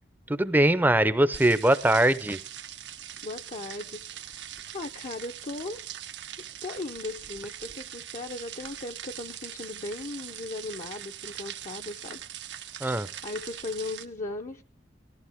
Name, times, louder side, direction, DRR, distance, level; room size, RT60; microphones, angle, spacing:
voice 1, 0.3-2.4 12.8-13.1, right 1 dB, 10° right, 15 dB, 0.6 m, -22 dB
sound 1, 1.3-14.1, right 11 dB, 85° right, 0.9 m, -42 dB
voice 2, 3.2-5.9 6.6-12.2 12.5-12.9 13.2-14.6, left 2 dB, 45° left, 3 dB, 0.7 m, -38 dB
18.5 x 14.5 x 3.5 m, 0.42 s
head